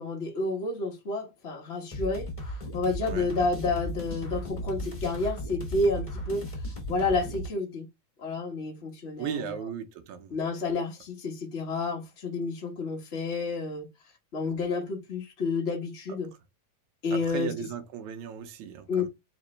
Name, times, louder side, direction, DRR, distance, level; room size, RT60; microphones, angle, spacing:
voice 1, 0.0-2.3 2.7-6.4 6.9-7.9 8.2-9.6 10.3-13.9 14.3-16.3 17.0-17.5 18.9-19.0, left 3 dB, 80° left, 0.6 m, -30 dB
sound 1, 1.9-7.5, equal, 30° left, 0.5 m, -36 dB
voice 2, 9.2-10.4 17.1-19.1, right 8 dB, 80° right, 2.1 m, -36 dB
4.8 x 3.0 x 3.1 m
omnidirectional pair, 3.4 m